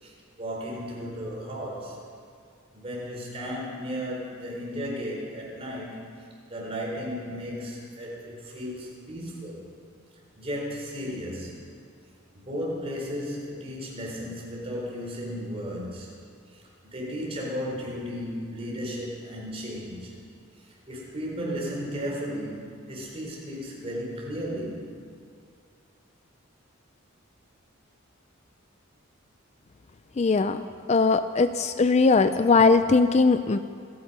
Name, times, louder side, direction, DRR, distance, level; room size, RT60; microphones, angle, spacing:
voice 1, 0.0-2.0 2.7-9.7 10.4-11.6 12.3-16.1 16.5-20.2 20.6-24.9, equal, 30° right, -3 dB, 3.9 m, -35 dB
voice 2, 30.2-33.6, left 4 dB, 30° left, 11 dB, 0.4 m, -20 dB
27.0 x 9.6 x 5.5 m, 2.3 s
head